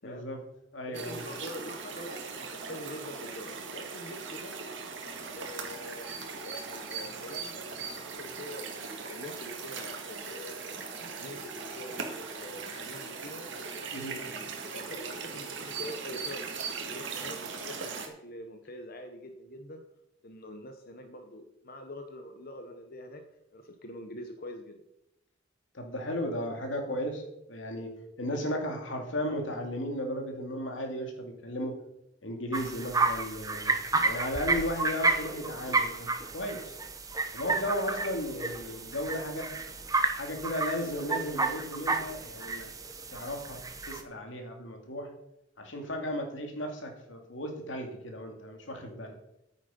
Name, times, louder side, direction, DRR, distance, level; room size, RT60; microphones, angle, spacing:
voice 1, 0.0-0.4 0.7-1.2 13.9-14.1 25.7-27.9 28.2-31.7 32.2-36.8 37.3-39.5 40.1-42.7 43.1-43.6 43.9-45.1 45.6-49.2, left 1 dB, 90° left, 3 dB, 2.4 m, -35 dB
voice 2, 0.9-4.5 5.3-6.1 6.3-13.5 13.7-19.8 20.2-23.2 23.5-24.8, left 1 dB, 55° left, 5 dB, 1.1 m, -45 dB
sound 1, 0.9-18.1, right 5 dB, 75° right, 1.9 m, -39 dB
sound 2, 32.5-44.0, right 3 dB, 20° right, 1.0 m, -31 dB
9.4 x 9.4 x 5.4 m, 0.83 s
head